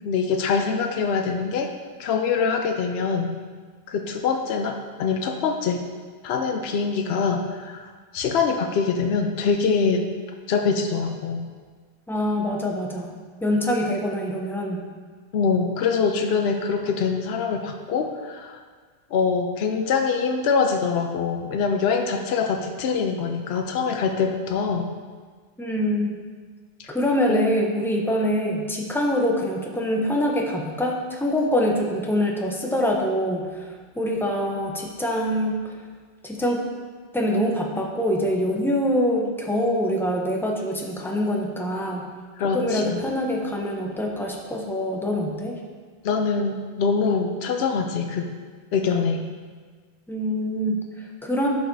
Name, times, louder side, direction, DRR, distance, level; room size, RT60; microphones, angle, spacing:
voice 1, 0.0-1.7 2.0-3.3 3.9-5.8 6.2-10.0 10.5-11.4 15.3-18.6 19.1-24.9 26.8-26.9 27.3-27.4 42.4-43.0 46.0-48.3 48.7-49.3, left 5 dB, 80° left, 4 dB, 0.8 m, -24 dB
voice 2, 12.1-13.2 13.4-14.8 25.6-26.2 26.9-35.5 36.2-36.6 37.1-42.1 42.5-45.6 50.1-51.5, equal, 5° left, 0 dB, 0.6 m, -24 dB
11.0 x 4.8 x 2.7 m, 1.5 s
omnidirectional pair, 1.0 m